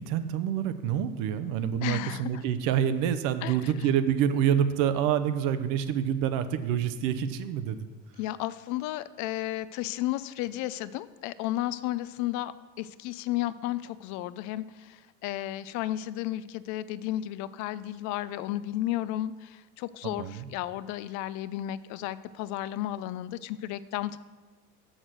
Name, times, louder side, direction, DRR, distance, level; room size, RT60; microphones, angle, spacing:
voice 1, 0.0-7.9 20.0-20.5, right 9 dB, 60° right, 11 dB, 0.8 m, -27 dB
voice 2, 1.8-2.3 3.4-3.6 8.2-24.2, left 14 dB, 55° left, 16 dB, 0.4 m, -33 dB
6.4 x 6.4 x 6.2 m, 1.3 s
supercardioid pair, 100°, 35 cm